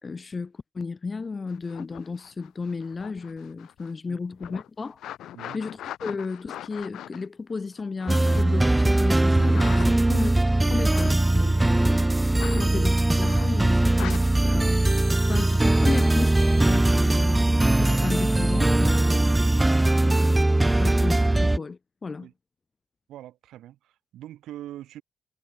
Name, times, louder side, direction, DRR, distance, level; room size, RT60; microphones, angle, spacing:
voice 1, 0.0-5.0 5.5-10.4 10.7-12.1 12.5-14.8 15.3-19.5 20.0-20.5 20.8-22.3, left 4 dB, 30° left, 2.2 m, -34 dB
sound 1, 1.5-4.0 4.4-8.7 9.4-10.3 10.8-11.2 12.4-12.7 13.2-13.6 13.9-14.2 15.0-16.0 20.5-20.9, left 12 dB, 75° left, 1.0 m, -41 dB
sound 2, 8.1-21.6, right 2 dB, 10° right, 0.3 m, -20 dB
voice 2, 23.1-25.0, right 13 dB, 80° right, 4.8 m, -43 dB
cardioid pair, 90°, 0 cm